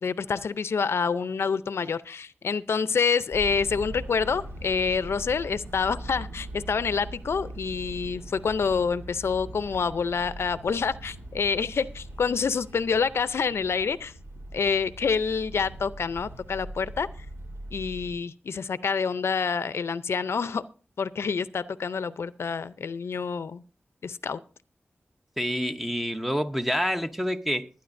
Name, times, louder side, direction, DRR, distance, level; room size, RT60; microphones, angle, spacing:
voice 1, 0.0-14.1 14.5-17.1 17.7-20.6 21.0-23.6 24.0-24.4, left 5 dB, 80° left, 0.5 m, -27 dB
sound 1, 3.3-18.2, right 1 dB, 70° right, 3.3 m, -41 dB
voice 2, 25.4-27.7, equal, 5° right, 0.8 m, -27 dB
21.5 x 9.6 x 2.6 m
wide cardioid pair, 120°, 4 cm